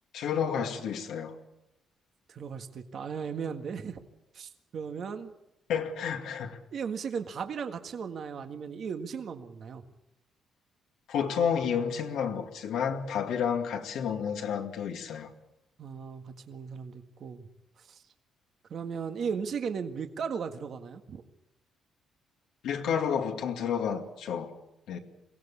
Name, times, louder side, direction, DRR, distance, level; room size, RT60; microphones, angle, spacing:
voice 1, 0.1-1.3 5.7-6.6 11.1-15.3 22.6-24.5 24.9-25.0, left 7 dB, 85° left, 2.2 m, -30 dB
voice 2, 2.3-4.0 4.3-5.3 6.7-9.8 15.8-17.5 17.8-18.0 18.7-21.2, right 6 dB, 60° right, 1.7 m, -36 dB
22.5 x 16.5 x 8.5 m
cardioid pair, 90°, 0 cm